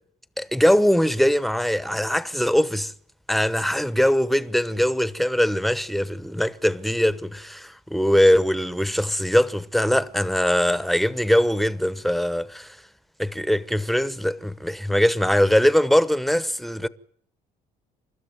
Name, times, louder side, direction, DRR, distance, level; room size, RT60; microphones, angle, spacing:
voice 1, 0.4-2.9 3.3-12.8 13.2-16.9, equal, ahead, 0.9 m, -21 dB
29.0 x 13.0 x 9.2 m
cardioid pair, 110°, 17 cm